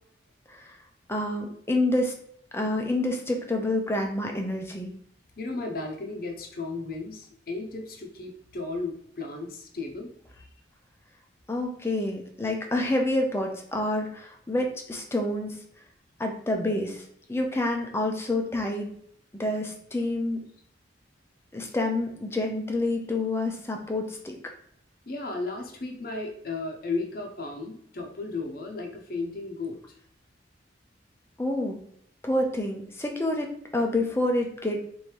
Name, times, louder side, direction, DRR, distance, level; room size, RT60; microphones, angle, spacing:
voice 1, 1.1-2.2 2.5-4.9 11.5-15.6 16.2-17.0 17.3-18.9 19.4-20.4 21.5-24.4 31.4-31.8 32.2-34.8, left 1 dB, 15° left, 2 dB, 0.6 m, -28 dB
voice 2, 5.4-10.1 10.4-10.5 25.1-29.8, left 3 dB, 55° left, 2 dB, 0.8 m, -34 dB
3.2 x 2.7 x 4.5 m, 0.67 s
head